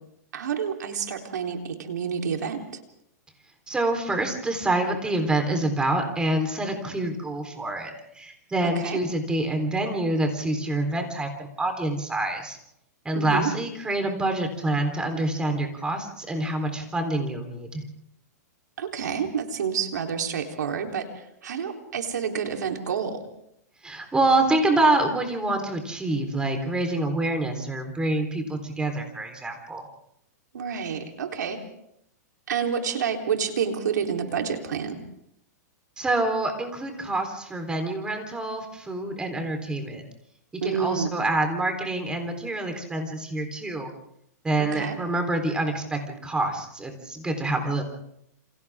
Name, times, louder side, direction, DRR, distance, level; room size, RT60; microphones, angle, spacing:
voice 1, 0.3-2.8 8.6-9.0 13.1-13.5 18.8-23.3 30.5-31.6 32.5-35.0 40.6-41.1 44.6-45.0, right 7 dB, 85° right, 3 dB, 3.8 m, -29 dB
voice 2, 3.7-12.6 13.0-17.8 23.8-29.9 36.0-40.0 40.6-43.9 44.4-47.8, right 2 dB, 10° right, 4 dB, 4.0 m, -26 dB
28.5 x 27.0 x 3.7 m, 0.77 s
hypercardioid pair, 140°, 9 cm